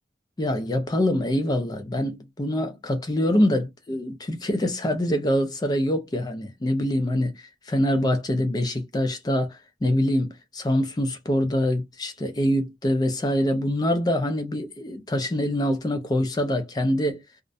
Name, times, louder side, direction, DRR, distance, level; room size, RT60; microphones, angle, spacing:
voice 1, 0.4-17.2, left 1 dB, 20° left, 0.3 m, -25 dB
2.4 x 2.0 x 2.5 m
head